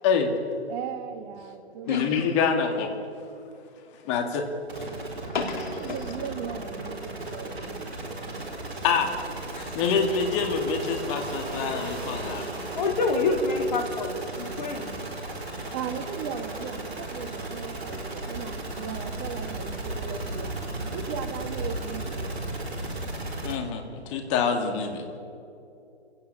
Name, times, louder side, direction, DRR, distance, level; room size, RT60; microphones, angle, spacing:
voice 1, 0.0-0.4 1.9-2.9 4.1-4.5 4.8-4.9 8.8-9.1 9.7-12.5 15.7-15.8 23.4-25.1, left 6 dB, 25° left, 4 dB, 2.4 m, -26 dB
voice 2, 0.7-2.0 5.7-7.9 14.5-14.7 15.1-15.3 15.7-20.6 20.9-22.4 24.1-24.2, right 8 dB, 25° right, 8 dB, 1.7 m, -37 dB
sound 1, 4.7-23.5, right 2 dB, 70° right, 4.6 m, -35 dB
voice 3, 5.3-5.7 9.6-9.8 12.8-14.1 14.4-14.9, left 3 dB, 45° left, 3 dB, 3.8 m, -27 dB
28.5 x 17.0 x 6.9 m, 2.7 s
figure-of-eight pair, 140°, 33 cm